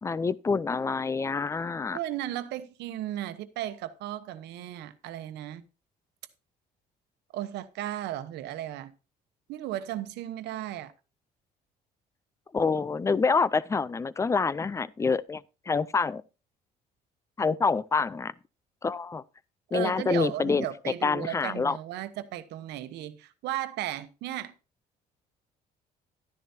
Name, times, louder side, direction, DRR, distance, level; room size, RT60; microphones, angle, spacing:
voice 1, 0.0-2.0 12.5-16.2 17.4-18.3 18.8-19.2 19.7-20.7 21.0-21.8, left 4 dB, 15° left, 0.4 m, -27 dB
voice 2, 1.9-5.6 7.3-8.9 9.5-10.9 19.7-24.5, right 13 dB, 80° right, 1.0 m, -35 dB
12.0 x 10.5 x 2.8 m
cardioid pair, 110°, 17 cm